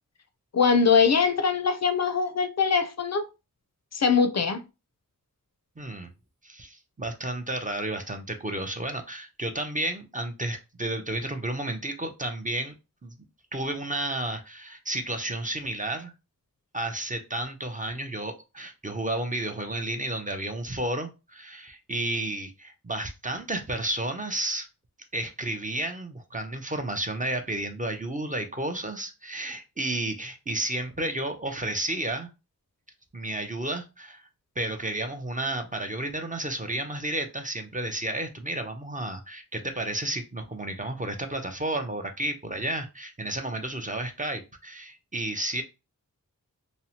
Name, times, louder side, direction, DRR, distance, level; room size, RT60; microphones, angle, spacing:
voice 1, 0.5-3.2 3.9-4.6, left 5 dB, 50° left, 0.4 m, -22 dB
voice 2, 5.8-6.1 6.4-12.7 13.0-13.1 13.5-16.1 16.7-24.7 25.1-32.3 33.1-34.3 34.6-45.6, right 1 dB, 25° right, 0.5 m, -32 dB
2.8 x 2.1 x 2.7 m
wide cardioid pair, 45°, 35 cm